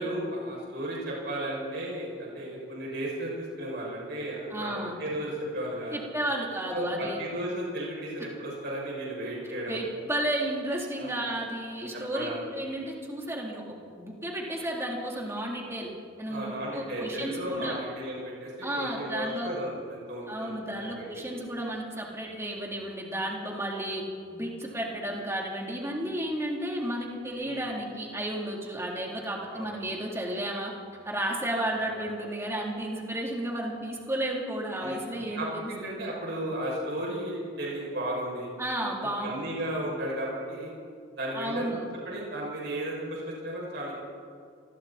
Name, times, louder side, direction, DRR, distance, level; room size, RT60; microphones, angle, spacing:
voice 1, 0.0-6.0 6.7-9.8 11.0-11.1 11.9-12.5 16.3-21.1 21.3-21.4 24.7-24.8 27.4-27.7 29.5-29.8 31.7-32.0 34.8-38.5 39.0-40.7 41.1-41.7 42.0-43.9, right 1 dB, 60° right, -4 dB, 7.1 m, -34 dB
voice 2, 4.5-5.0 5.9-7.2 9.7-13.6 13.9-15.9 16.2-17.8 18.6-19.5 20.3-24.0 24.3-30.7 31.0-36.1 38.6-39.4 41.3-41.9, right 1 dB, 15° right, -2 dB, 3.7 m, -33 dB
27.0 x 21.5 x 4.5 m, 2.2 s
head